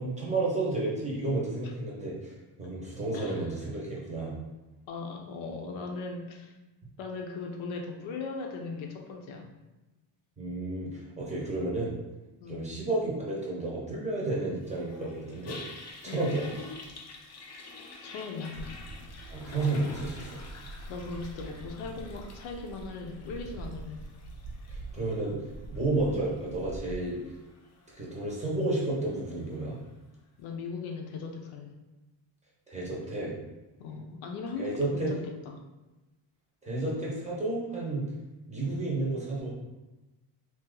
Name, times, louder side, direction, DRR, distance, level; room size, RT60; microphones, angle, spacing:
voice 1, 0.0-2.3 2.6-4.4 10.4-11.9 12.5-15.6 16.0-16.4 19.3-20.4 24.7-25.4 25.7-27.2 27.9-29.8 32.7-33.3 34.6-35.1 36.6-38.1 38.5-39.5, right 2 dB, 15° right, -5 dB, 0.7 m, -31 dB
voice 2, 3.1-3.5 4.9-6.6 7.0-9.5 12.4-12.6 16.1-16.3 18.0-18.7 20.9-24.0 30.4-31.7 33.8-35.6, left 4 dB, 75° left, 3 dB, 0.7 m, -38 dB
Toilet flush, 14.6-29.8, left 3 dB, 35° left, 0.5 m, -49 dB
sound 1, 18.5-27.0, right 2 dB, 75° right, 0.9 m, -44 dB
2.8 x 2.4 x 3.7 m, 1.1 s
cardioid pair, 145°, 48 cm